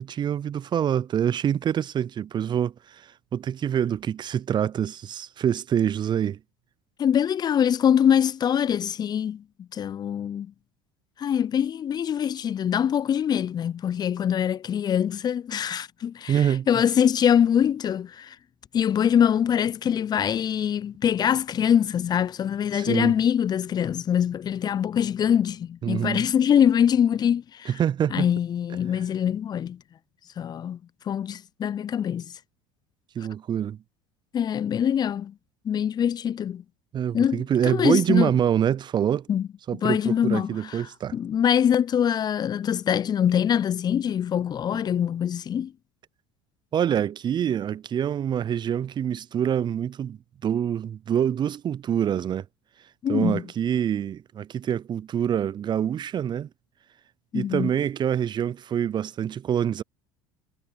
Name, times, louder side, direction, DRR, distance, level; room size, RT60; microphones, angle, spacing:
voice 1, 0.0-6.4 16.3-16.7 22.7-23.1 25.8-26.3 27.7-28.3 33.2-33.8 36.9-39.3 39.7-41.2 46.7-52.4 53.1-56.5 57.3-59.8, right 9 dB, 35° right, 0.5 m, -26 dB
voice 2, 7.0-10.5 11.2-18.4 18.7-27.7 28.1-29.8 30.4-30.8 31.1-32.3 34.3-35.3 35.6-36.6 37.1-38.3 39.3-40.9 41.1-45.7 53.0-53.4 57.3-57.7, left 9 dB, 30° left, 0.5 m, -24 dB
hypercardioid pair, 75°, 13 cm